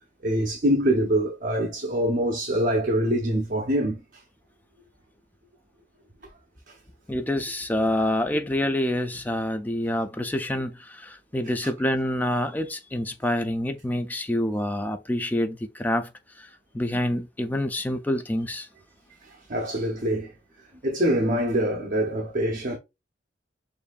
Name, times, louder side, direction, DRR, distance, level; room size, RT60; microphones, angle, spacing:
voice 1, 0.2-4.0 6.7-6.8 11.6-11.7 19.2-20.3 20.8-22.8, right 1 dB, 45° right, 0.8 m, -24 dB
voice 2, 7.1-16.1 16.4-16.5 16.7-18.7, left 1 dB, 10° left, 0.4 m, -27 dB
6.8 x 2.6 x 2.4 m
head